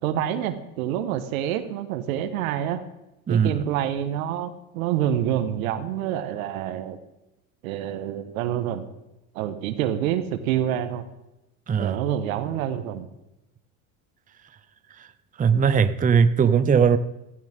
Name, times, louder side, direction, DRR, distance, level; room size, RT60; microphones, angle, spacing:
voice 1, 0.0-2.8 3.3-7.0 7.6-8.8 9.3-11.0 11.8-13.1, right 10 dB, 75° right, 10 dB, 1.6 m, -27 dB
voice 2, 3.3-3.7 11.7-12.0 15.4-17.0, right 6 dB, 20° right, 11 dB, 0.7 m, -19 dB
16.0 x 15.5 x 3.8 m, 0.92 s
hypercardioid pair, 90°, 41 cm